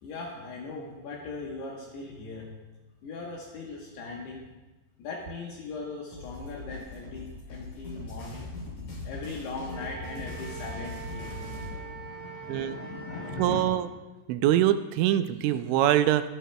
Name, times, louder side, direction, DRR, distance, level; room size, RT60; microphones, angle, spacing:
voice 1, 0.0-2.5 3.0-4.5 5.0-8.5 9.0-13.6, left 3 dB, 70° left, -2 dB, 2.9 m, -39 dB
sound 1, 6.1-11.7, left 2 dB, 45° left, 4.7 m, -40 dB
Wind instrument woodwind instrument, 9.7-13.6, right 6 dB, 65° right, 3.3 m, -43 dB
voice 2, 13.4-13.9 14.3-16.3, right 12 dB, 85° right, 10 dB, 2.9 m, -24 dB
22.5 x 8.3 x 2.2 m, 1.2 s
omnidirectional pair, 5.4 m